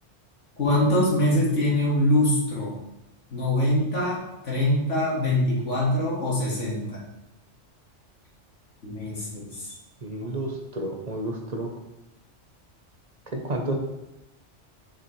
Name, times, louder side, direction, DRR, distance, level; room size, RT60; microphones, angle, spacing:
voice 1, 0.6-2.8 3.3-7.0 8.8-9.7 10.2-10.3, left 1 dB, 90° left, -5 dB, 2.2 m, -24 dB
voice 2, 10.0-11.7 13.3-13.8, right 1 dB, 40° right, 3 dB, 0.9 m, -30 dB
6.9 x 6.3 x 3.2 m, 0.91 s
omnidirectional pair, 1.2 m